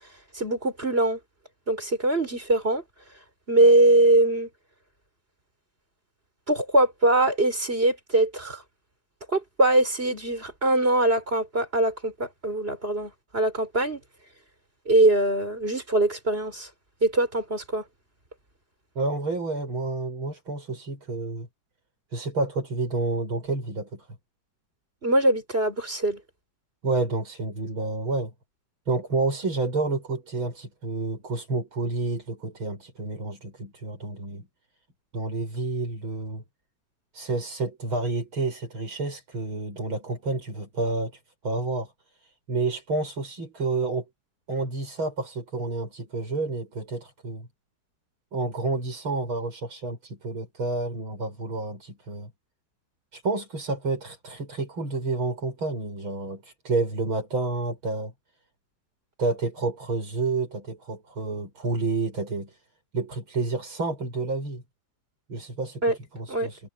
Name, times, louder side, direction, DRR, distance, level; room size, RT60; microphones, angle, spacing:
voice 1, 0.3-1.2 1.7-2.8 3.5-4.5 6.5-8.6 9.3-14.0 14.9-16.7 17.0-17.8 25.0-26.2 65.8-66.0 66.3-66.5, right 2 dB, 25° right, 6.0 m, -22 dB
voice 2, 19.0-21.5 22.1-24.1 26.8-28.3 28.9-34.5 35.1-36.4 37.1-41.1 41.4-41.9 42.5-44.1 44.5-47.5 48.3-52.3 53.1-58.1 59.2-62.6 62.9-64.6 65.3-65.8 66.1-66.6, right 3 dB, 80° right, 8.9 m, -29 dB
omnidirectional pair, 2.2 m